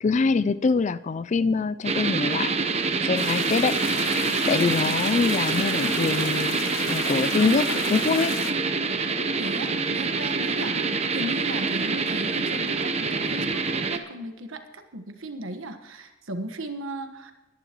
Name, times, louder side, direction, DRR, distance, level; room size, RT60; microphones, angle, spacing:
voice 1, 0.0-2.5 3.0-3.8 4.1-6.6 6.9-8.4, left 4 dB, 35° left, 16 dB, 0.3 m, -24 dB
sound 1, 1.8-14.0, right 4 dB, 30° right, 0.8 m, -26 dB
sound 2, 3.2-8.5, left 6 dB, 80° left, 1.0 m, -34 dB
voice 2, 9.4-10.8 11.1-17.3, right 1 dB, 80° right, 8 dB, 1.4 m, -36 dB
21.0 x 11.0 x 3.0 m, 1.1 s
head